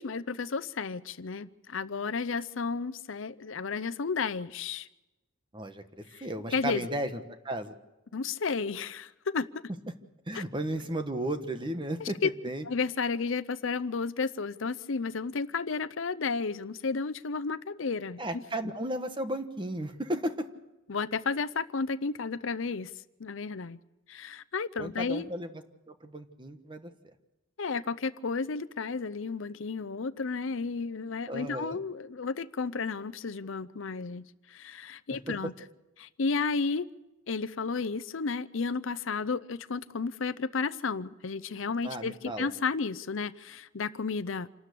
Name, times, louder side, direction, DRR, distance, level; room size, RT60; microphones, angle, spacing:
voice 1, 0.0-4.9 6.1-6.9 8.1-9.5 10.3-10.4 12.0-12.3 12.6-18.4 20.9-22.9 23.2-23.8 24.1-25.3 27.6-35.5 36.0-36.9 37.3-44.5, left 4 dB, 70° left, 16 dB, 0.6 m, -32 dB
voice 2, 6.2-7.2 7.4-7.7 10.3-12.2 12.4-12.6 18.2-20.3 24.8-25.5 25.9-26.9 31.3-31.8 41.8-42.5, right 1 dB, 25° right, 8 dB, 1.3 m, -34 dB
27.5 x 13.0 x 8.4 m, 1.0 s
head